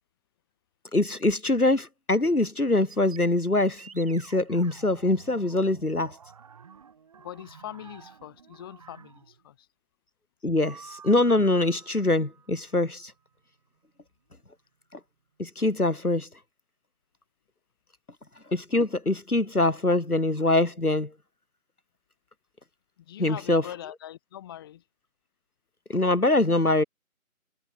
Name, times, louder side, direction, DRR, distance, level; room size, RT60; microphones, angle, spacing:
voice 1, 0.9-6.1 10.4-10.8 11.0-13.1 15.4-16.3 18.5-21.1 23.2-23.6 25.9-26.8, left 2 dB, 90° left, 2.8 m, -23 dB
sound 1, 2.8-9.4 10.6-13.2, right 6 dB, 25° right, 4.6 m, -50 dB
voice 2, 7.2-9.7 23.0-24.8, left 12 dB, 15° left, 8.0 m, -42 dB
figure-of-eight pair, 160°, 43 cm